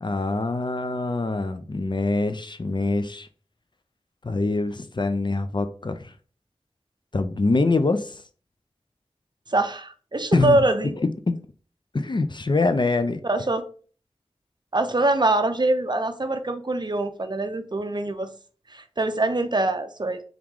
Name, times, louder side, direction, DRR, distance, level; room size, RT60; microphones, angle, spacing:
voice 1, 0.0-3.3 4.2-6.1 7.1-8.2 10.3-10.6 11.0-11.3 11.9-13.2, left 3 dB, 45° left, 0.4 m, -24 dB
voice 2, 9.5-10.9 13.2-13.6 14.7-18.3 18.7-20.2, right 2 dB, 40° right, 0.5 m, -24 dB
3.6 x 3.0 x 3.6 m
wide cardioid pair, 55°, 11 cm